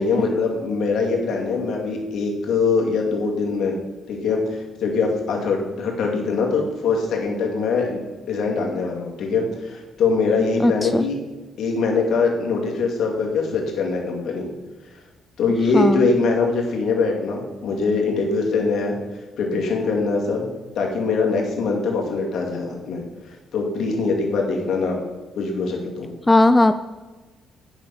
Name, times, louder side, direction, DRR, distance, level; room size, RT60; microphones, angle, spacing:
voice 1, 0.0-3.8 4.1-8.0 8.3-11.2 11.6-14.5 15.4-19.0 19.4-20.5 20.8-23.0 23.5-25.0 25.4-26.1, left 4 dB, 70° left, 0 dB, 2.3 m, -22 dB
voice 2, 10.6-11.0 15.7-16.1 26.3-26.7, left 2 dB, 15° left, 11 dB, 0.4 m, -16 dB
8.8 x 5.7 x 6.9 m, 1.2 s
cardioid pair, 90°, 0 cm